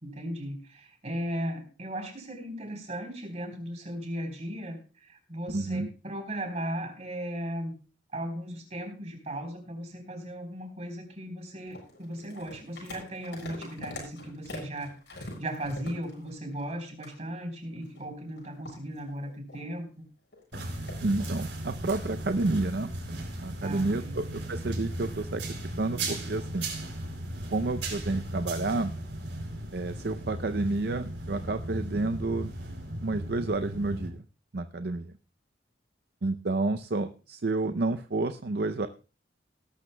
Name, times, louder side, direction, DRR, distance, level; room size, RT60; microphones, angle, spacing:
voice 1, 0.0-7.7 8.1-19.9 23.6-24.2, equal, 40° right, 4 dB, 3.7 m, -37 dB
voice 2, 5.5-5.9 21.0-22.9 23.4-25.4 25.8-26.7 27.5-28.9 29.7-32.5 33.0-34.2 34.5-35.1 36.2-38.9, right 2 dB, 60° right, 9 dB, 0.6 m, -30 dB
sound 1, 11.7-16.8 17.0-17.2 17.8-19.8 20.3-21.0, left 2 dB, 75° left, 6.8 m, -44 dB
sound 2, 20.5-34.1, right 1 dB, 80° right, 4.5 m, -36 dB
18.5 x 12.5 x 2.2 m, 0.34 s
head